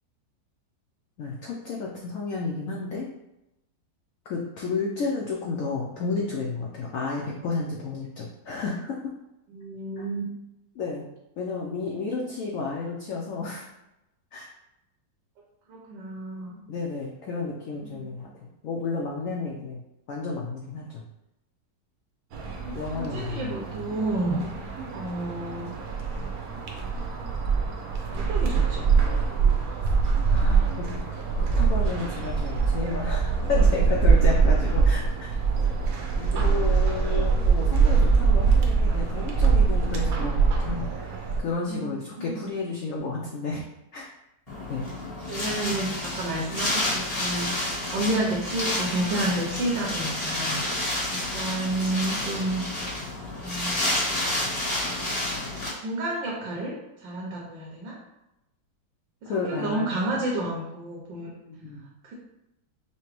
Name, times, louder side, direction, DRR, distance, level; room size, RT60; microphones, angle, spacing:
voice 1, 1.2-3.1 4.3-9.0 10.0-10.1 10.7-11.0 11.4-13.7 14.3-14.5 16.7-19.8 20.1-21.0 22.7-23.6 30.3-35.3 36.2-41.1 41.4-43.6 43.9-44.1 44.7-44.9 45.7-45.8 59.3-59.9 61.5-61.9, left 4 dB, 75° left, -2 dB, 0.7 m, -32 dB
voice 2, 9.5-10.2 15.7-16.6 17.8-18.2 22.6-24.4 24.9-25.7 28.1-28.9 35.6-35.7 36.0-36.1 41.7-41.9 42.2-42.5 45.2-52.6 53.3-53.8 54.8-55.1 55.7-58.0 59.2-61.3 62.0-62.1, right 1 dB, 85° right, -3 dB, 1.5 m, -31 dB
sound 1, 22.3-41.4, right 5 dB, 65° right, 0.9 m, -23 dB
Wind, 44.5-55.7, left 1 dB, 25° left, 1.0 m, -30 dB
5.8 x 2.1 x 3.0 m, 0.91 s
omnidirectional pair, 2.0 m